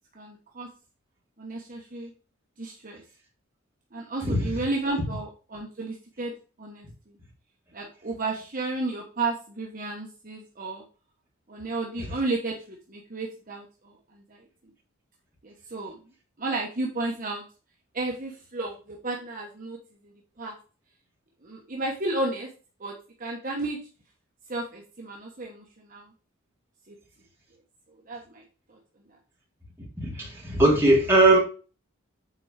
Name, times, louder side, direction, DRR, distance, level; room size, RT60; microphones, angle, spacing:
voice 1, 0.2-0.7 1.4-2.1 2.6-3.0 3.9-6.3 6.6-6.9 7.7-10.8 11.5-13.6 15.4-15.9 16.4-17.4 17.9-19.8 20.4-20.5 21.4-22.5 22.8-22.9 23.2-23.8 24.5-26.1 26.9-27.0 28.1-28.4 28.7-28.8, right 2 dB, 40° right, -1 dB, 1.1 m, -32 dB
voice 2, 30.2-31.4, right 2 dB, 10° right, -4 dB, 3.1 m, -19 dB
8.3 x 4.7 x 4.7 m, 0.36 s
head